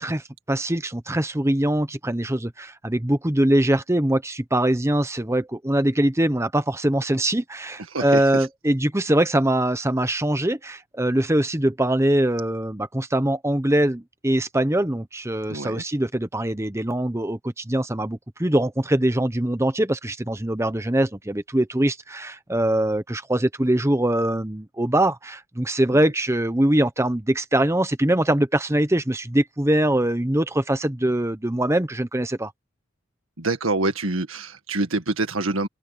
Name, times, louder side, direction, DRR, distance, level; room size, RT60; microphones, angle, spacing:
voice 1, 0.0-32.5, right 1 dB, 15° right, 1.0 m, -22 dB
voice 2, 7.9-8.5 15.5-15.8 25.9-26.0 33.4-35.7, right 2 dB, 90° right, 1.8 m, -26 dB
open air
head